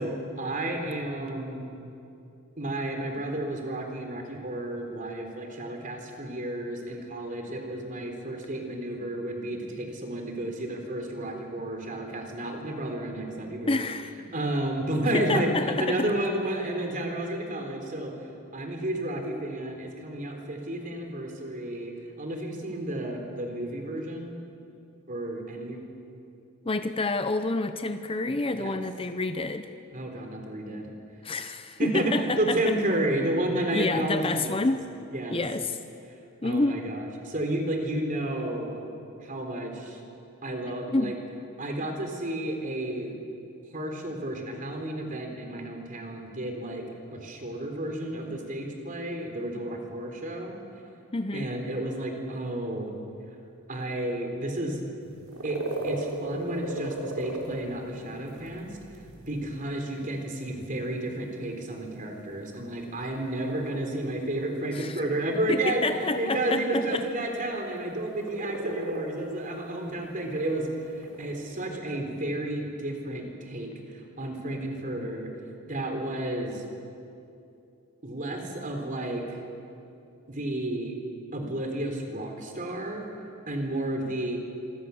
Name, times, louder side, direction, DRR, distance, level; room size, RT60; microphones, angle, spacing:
voice 1, 0.0-1.7 2.6-13.8 14.3-18.1 18.5-21.9 22.2-24.4 25.1-25.8 28.6-28.8 29.9-30.9 31.8-32.1 32.4-34.6 35.1-35.4 36.4-38.8 39.2-40.0 40.4-41.1 41.6-43.2 43.7-46.8 47.1-50.5 51.3-52.9 53.7-54.8 55.4-58.8 59.3-75.3 75.7-76.6 78.0-79.4 80.3-81.0 81.3-83.1 83.5-84.4, right 1 dB, 40° right, 3 dB, 3.8 m, -31 dB
voice 2, 13.7-14.1 15.1-16.1 26.6-29.7 31.2-32.8 33.7-34.9 35.3-35.8 36.4-36.8 40.9-41.1 51.1-51.5 64.7-65.0 65.5-67.1, left 2 dB, 25° left, 9 dB, 0.7 m, -28 dB
sound 1, 55.0-71.7, right 1 dB, 85° right, 5.4 m, -39 dB
26.5 x 24.0 x 7.1 m, 2.7 s
head